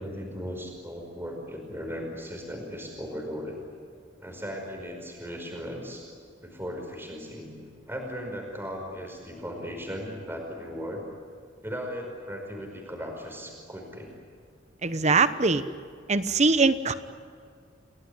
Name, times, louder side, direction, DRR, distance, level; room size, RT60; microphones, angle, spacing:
voice 1, 0.0-3.7 4.2-6.1 6.4-11.0 11.6-14.1, equal, 10° right, 2 dB, 5.2 m, -37 dB
voice 2, 14.8-15.6 16.1-16.9, right 4 dB, 35° right, 12 dB, 1.0 m, -22 dB
29.5 x 18.5 x 9.8 m, 2.1 s
head